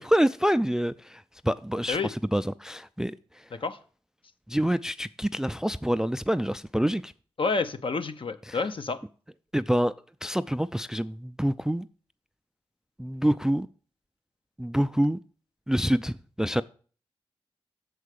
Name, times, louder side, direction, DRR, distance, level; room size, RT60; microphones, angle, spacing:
voice 1, 0.0-3.2 4.5-7.1 8.5-8.6 9.5-9.9 10.2-11.9 13.0-13.7 14.6-15.2 15.7-16.6, equal, 5° right, 0.3 m, -26 dB
voice 2, 7.4-9.0, left 4 dB, 55° left, 0.7 m, -29 dB
6.7 x 4.7 x 6.5 m
cardioid pair, 45°, 11 cm